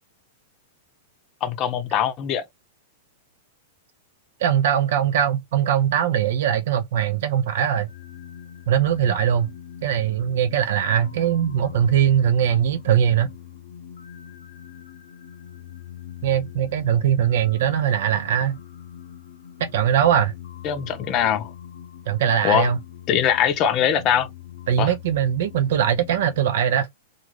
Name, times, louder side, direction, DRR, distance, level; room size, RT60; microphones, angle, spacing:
voice 1, 1.4-2.5 20.6-21.5 22.4-22.7 23.1-24.3 24.8-24.9, left 9 dB, 40° left, 0.6 m, -22 dB
voice 2, 4.4-7.9 8.7-9.5 9.8-13.3 16.2-18.6 19.6-20.3 22.1-22.8 24.7-26.9, right 9 dB, 70° right, 0.5 m, -21 dB
sound 1, 7.9-26.5, left 10 dB, 90° left, 0.5 m, -42 dB
2.4 x 2.4 x 3.1 m
hypercardioid pair, 125°, 0 cm